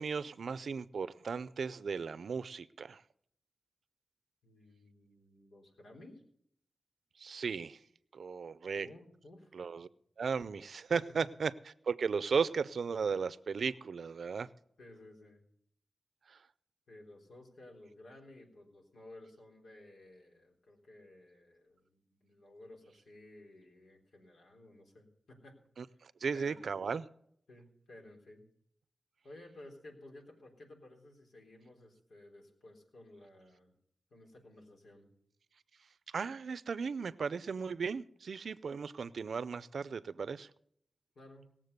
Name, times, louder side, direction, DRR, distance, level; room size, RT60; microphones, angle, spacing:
voice 1, 0.0-3.0 7.2-7.8 8.1-8.9 9.5-9.9 10.2-11.5 11.8-14.5 16.3-16.4 25.8-27.1 36.1-40.5, right 5 dB, 80° right, 0.5 m, -36 dB
voice 2, 4.4-6.2 8.7-9.6 10.9-11.2 14.8-15.4 16.9-25.6 25.9-26.0 26.3-26.6 27.5-28.4 29.2-33.7 34.1-35.1 41.2-41.5, left 1 dB, 90° left, 3.6 m, -55 dB
19.0 x 7.4 x 6.6 m
wide cardioid pair, 70°, 0 cm